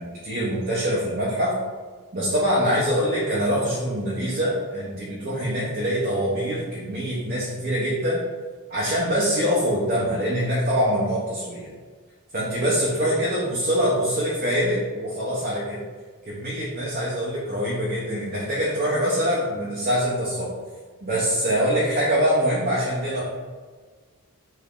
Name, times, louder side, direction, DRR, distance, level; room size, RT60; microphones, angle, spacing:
voice 1, 0.0-1.6 2.1-8.2 8.7-11.7 12.3-15.8 16.2-20.5 21.0-23.2, equal, 40° right, -6 dB, 0.6 m, -24 dB
3.5 x 3.2 x 2.4 m, 1.5 s
head